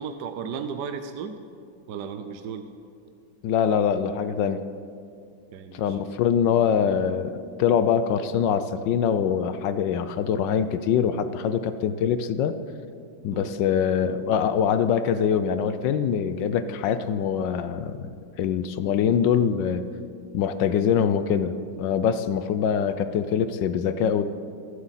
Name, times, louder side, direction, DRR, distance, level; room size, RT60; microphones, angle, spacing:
voice 1, 0.0-1.4 1.9-2.7 5.5-6.0 13.3-13.5, right 6 dB, 70° right, 8 dB, 1.1 m, -34 dB
voice 2, 3.4-4.6 5.7-7.3 7.6-12.5 13.2-18.0 18.4-19.8 20.3-24.2, left 8 dB, 75° left, 11 dB, 1.2 m, -23 dB
23.5 x 8.1 x 4.1 m, 2.3 s
omnidirectional pair, 2.1 m